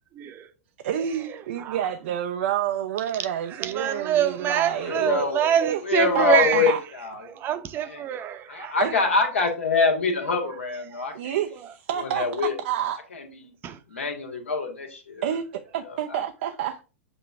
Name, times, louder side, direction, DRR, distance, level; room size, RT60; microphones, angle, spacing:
voice 1, 0.1-0.5 0.9-1.9 3.4-6.8 7.2-9.0 10.4-10.5 10.9-11.0 11.5-11.7 13.6-13.8, right 10 dB, 30° right, 0.9 m, -27 dB
voice 2, 0.8-5.3 5.6-5.8 6.1-6.8 8.8-8.9 11.1-13.0 15.2-16.8, right 10 dB, 55° right, 0.6 m, -29 dB
voice 3, 4.9-5.5 5.9-7.5 8.5-11.4 12.0-12.5 13.1-13.5 13.9-15.2 16.1-16.2, left 4 dB, 65° left, 1.9 m, -25 dB
7.7 x 3.0 x 4.7 m
figure-of-eight pair, 100°, 7 cm